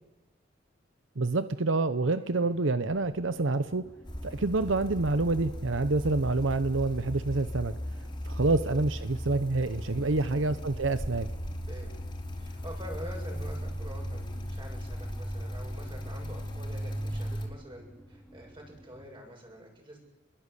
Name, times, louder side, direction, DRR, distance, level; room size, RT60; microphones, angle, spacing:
voice 1, 1.2-3.8 4.2-7.7 8.2-11.3, right 3 dB, 90° right, 12 dB, 0.9 m, -27 dB
voice 2, 2.1-2.5 5.6-5.9 8.4-8.6 10.0-10.5 11.7-12.0 12.3-20.0, equal, 25° right, 1 dB, 8.0 m, -46 dB
sound 1, 2.9-19.1, equal, 5° left, 3.8 m, -53 dB
sound 2, 4.0-17.5, equal, 25° left, 4.5 m, -37 dB
29.0 x 21.5 x 8.4 m, 1.1 s
head